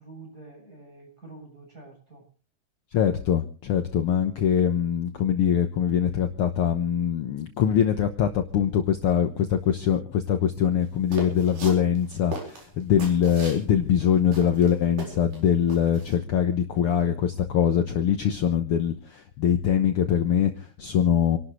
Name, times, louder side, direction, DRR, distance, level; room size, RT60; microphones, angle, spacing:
voice 1, 0.0-2.2, right 3 dB, 25° right, 1 dB, 7.9 m, -47 dB
voice 2, 2.9-21.4, left 8 dB, 75° left, 7 dB, 1.3 m, -23 dB
sound 1, 11.1-13.6 14.0-14.1 14.3-15.4 15.7-16.1, right 2 dB, 70° right, 5.9 m, -38 dB
29.0 x 12.0 x 3.2 m, 0.36 s
omnidirectional pair, 4.0 m